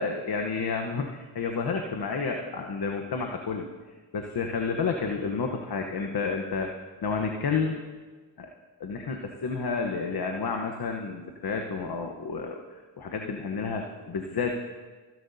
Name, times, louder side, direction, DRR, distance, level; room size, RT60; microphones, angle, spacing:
voice 1, 0.0-3.7 4.1-6.7 7.0-7.8 8.4-8.5 8.8-12.6 13.0-14.6, left 4 dB, 55° left, 3 dB, 1.1 m, -30 dB
26.5 x 10.5 x 2.7 m, 1.4 s
supercardioid pair, 45°, 46 cm